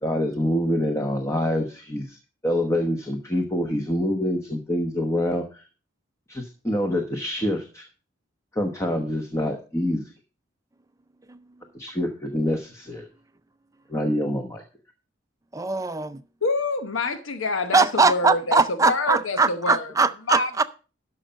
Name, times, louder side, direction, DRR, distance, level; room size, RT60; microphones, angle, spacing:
voice 1, 0.0-2.2 2.4-5.6 6.3-7.8 8.5-10.0 11.7-13.1 13.9-14.6, left 1 dB, 15° left, 1.0 m, -26 dB
voice 2, 15.5-16.2 17.7-20.6, right 4 dB, 15° right, 0.5 m, -21 dB
voice 3, 16.4-19.9 20.3-20.6, left 3 dB, 85° left, 0.9 m, -26 dB
12.5 x 5.7 x 5.2 m
head